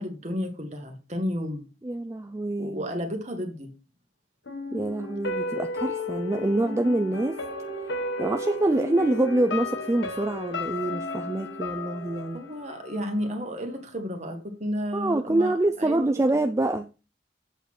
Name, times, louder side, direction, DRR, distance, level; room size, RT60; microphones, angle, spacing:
voice 1, 0.0-1.7 2.6-3.7 12.3-16.1, equal, 35° right, 1.7 m, -32 dB
voice 2, 1.8-2.9 4.7-7.4 8.2-12.4 14.9-16.9, right 2 dB, 15° right, 0.3 m, -26 dB
sound 1, 4.5-13.4 13.8-13.9, left 2 dB, 75° left, 1.4 m, -34 dB
8.0 x 4.1 x 6.2 m
head